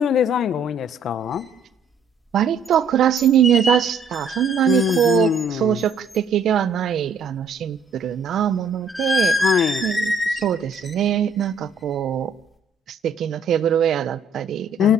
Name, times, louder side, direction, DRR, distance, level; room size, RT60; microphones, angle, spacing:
voice 1, 0.0-1.4 4.7-5.8 9.4-9.8 14.8-14.9, left 9 dB, 70° left, 1.7 m, -21 dB
sound 1, 1.3-1.4 2.7-2.8 3.2-5.5 5.8-6.2 8.9-10.5 10.7-11.1 11.4-11.7, left 1 dB, 10° left, 6.2 m, -25 dB
voice 2, 2.3-9.4 9.8-12.3 12.9-14.9, right 10 dB, 70° right, 1.2 m, -22 dB
28.5 x 19.5 x 8.8 m
cardioid pair, 90°, 0 cm